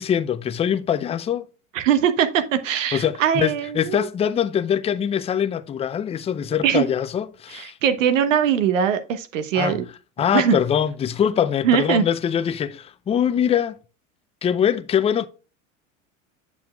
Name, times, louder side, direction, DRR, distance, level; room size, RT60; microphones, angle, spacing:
voice 1, 0.0-1.5 2.9-7.8 9.5-9.8 10.2-13.8 14.4-15.3, left 9 dB, 15° left, 0.4 m, -23 dB
voice 2, 1.7-4.1 6.6-6.9 7.5-9.8 10.3-10.6 11.6-12.0, right 8 dB, 80° right, 1.1 m, -21 dB
8.0 x 7.0 x 2.3 m
hypercardioid pair, 95°, 38 cm